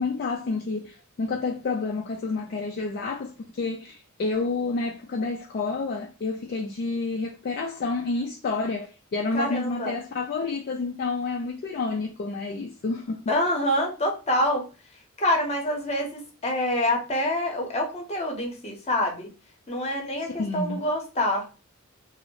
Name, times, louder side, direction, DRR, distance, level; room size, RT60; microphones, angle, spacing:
voice 1, 0.0-13.2 20.2-20.8, left 3 dB, 50° left, 0.3 m, -29 dB
voice 2, 9.3-10.0 13.3-14.6 15.2-19.3 19.7-21.4, left 1 dB, 30° left, 0.7 m, -26 dB
2.5 x 2.0 x 2.8 m
head